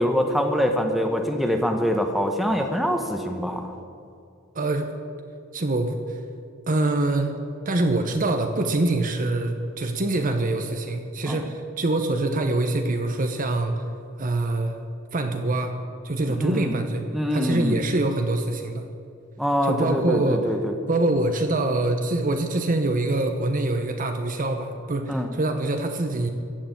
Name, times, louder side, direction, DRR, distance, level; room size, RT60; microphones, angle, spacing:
voice 1, 0.0-3.6 11.3-11.4 16.4-16.8 17.1-17.7 19.4-20.7 25.1-25.3, equal, ahead, 4 dB, 0.9 m, -24 dB
voice 2, 4.5-4.9 5.5-6.2 6.7-7.4 7.7-13.8 14.2-14.8 15.1-15.8 16.0-17.0 17.3-18.8 19.6-20.5 20.9-26.3, right 2 dB, 40° right, 5 dB, 0.9 m, -24 dB
15.0 x 6.7 x 9.0 m, 2.5 s
head